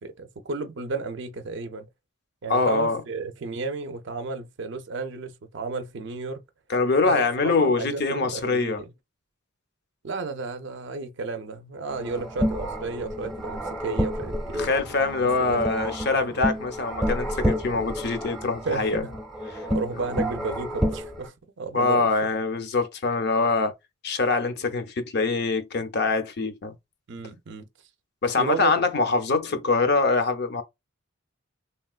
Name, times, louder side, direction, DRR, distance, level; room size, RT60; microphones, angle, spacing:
voice 1, 0.0-1.9 2.4-6.4 7.0-8.9 10.0-14.7 15.2-15.8 16.1-16.4 18.7-19.1 19.7-22.1 27.1-27.7 28.4-28.7, right 3 dB, 60° right, 0.5 m, -33 dB
voice 2, 2.5-3.0 6.7-8.8 14.6-19.0 21.7-23.7 24.0-26.7 28.2-30.6, left 3 dB, 50° left, 0.6 m, -24 dB
sound 1, 11.9-21.3, equal, ahead, 0.6 m, -30 dB
3.4 x 2.2 x 2.3 m
head